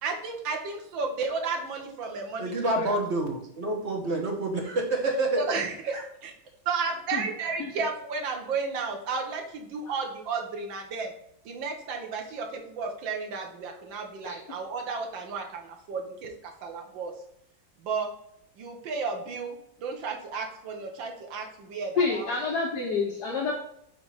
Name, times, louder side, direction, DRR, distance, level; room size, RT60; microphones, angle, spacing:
voice 1, 0.0-3.0 5.4-6.3 6.6-11.1 11.4-17.1 17.8-18.1 18.6-22.3, right 4 dB, 80° right, 3 dB, 1.7 m, -33 dB
voice 2, 2.4-5.4 5.9-6.0, right 2 dB, 40° right, 1 dB, 1.3 m, -28 dB
voice 3, 22.0-23.5, left 4 dB, 60° left, -1 dB, 1.3 m, -28 dB
5.1 x 3.8 x 5.4 m, 0.74 s
omnidirectional pair, 2.1 m